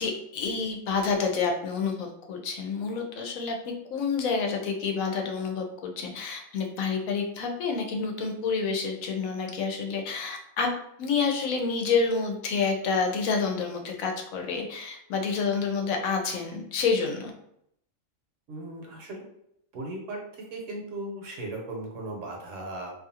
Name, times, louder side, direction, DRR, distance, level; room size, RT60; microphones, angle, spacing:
voice 1, 0.0-3.6 3.9-10.7 11.0-17.3, left 5 dB, 90° left, 3 dB, 1.0 m, -28 dB
voice 2, 18.5-19.2 19.7-20.2 20.5-22.9, right 2 dB, 70° right, 0 dB, 1.1 m, -37 dB
2.6 x 2.4 x 2.7 m, 0.75 s
omnidirectional pair, 1.4 m